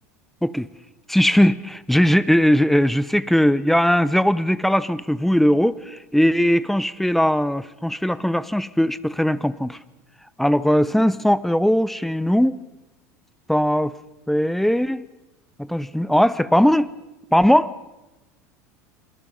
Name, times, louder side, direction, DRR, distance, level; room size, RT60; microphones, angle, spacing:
voice 1, 1.1-9.8 10.4-12.6 13.5-13.9 14.3-15.0 15.6-16.9 17.3-17.8, equal, 5° left, 18 dB, 0.8 m, -19 dB
26.5 x 21.0 x 5.5 m, 1.0 s
hypercardioid pair, 85°, 8 cm